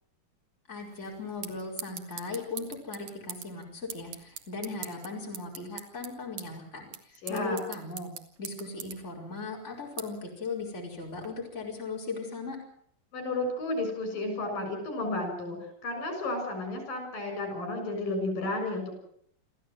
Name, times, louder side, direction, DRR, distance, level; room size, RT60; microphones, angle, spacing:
voice 1, 0.7-8.1 8.4-12.6, left 3 dB, 20° left, -1 dB, 5.1 m, -38 dB
sound 1, 0.8-11.3, right 8 dB, 70° right, 3.2 m, -45 dB
voice 2, 7.2-7.6 13.1-15.6 15.8-18.9, left 2 dB, 80° left, 6 dB, 8.3 m, -32 dB
26.5 x 15.0 x 7.6 m, 0.65 s
omnidirectional pair, 3.8 m